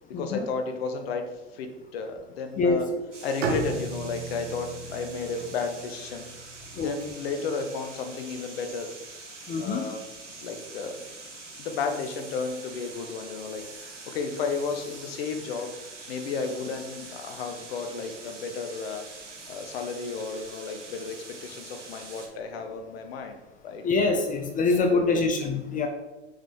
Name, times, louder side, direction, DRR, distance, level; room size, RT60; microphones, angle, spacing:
voice 1, 0.2-1.2 1.5-2.9 3.2-6.3 6.8-8.9 9.6-10.0 10.4-11.0 11.6-15.7 16.1-19.0 19.5-23.4 23.6-23.8 24.9-25.2, left 4 dB, 55° left, 6 dB, 1.2 m, -33 dB
voice 2, 2.6-3.0 6.8-6.9 9.5-9.9 23.8-25.9, left 3 dB, 25° left, 4 dB, 0.8 m, -25 dB
sound 1, 3.1-22.3, right 3 dB, 85° right, 1.5 m, -44 dB
Bowed string instrument, 3.4-7.3, right 3 dB, 60° right, 1.7 m, -35 dB
7.1 x 5.6 x 3.7 m, 1.1 s
figure-of-eight pair, 90°, 35 cm